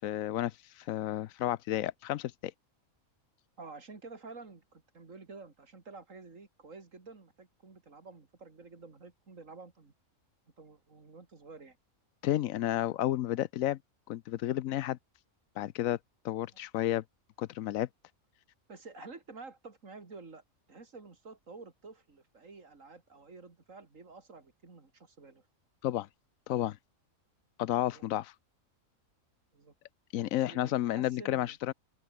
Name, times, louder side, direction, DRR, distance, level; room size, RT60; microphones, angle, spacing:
voice 1, 0.0-2.5 12.2-13.8 14.1-15.0 15.6-16.0 16.2-17.0 17.4-17.9 25.8-26.1 26.5-26.8 27.6-28.3 30.1-31.7, left 13 dB, 80° left, 1.0 m, -31 dB
voice 2, 3.6-9.9 10.6-11.8 18.7-20.4 20.7-25.5 27.9-28.0 29.5-29.7 30.4-31.6, right 4 dB, 70° right, 3.1 m, -50 dB
open air
omnidirectional pair, 1.4 m